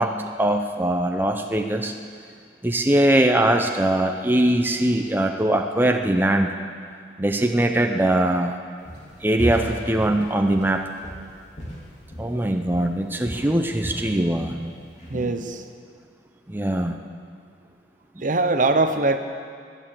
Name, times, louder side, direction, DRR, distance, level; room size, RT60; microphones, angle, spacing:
voice 1, 0.0-1.9 2.6-6.5 7.2-8.6 9.2-10.8 12.2-14.5 16.5-17.0 18.2-18.3, right 1 dB, 10° right, 4 dB, 0.7 m, -21 dB
Walk footsteps, 8.9-9.1 9.4-12.4 12.7-13.0 13.3-14.6 15.0-15.4, equal, 40° left, 3.2 m, -34 dB
voice 2, 15.1-15.6 18.2-19.2, right 2 dB, 45° right, 8 dB, 0.9 m, -21 dB
17.5 x 11.0 x 7.6 m, 2.1 s
head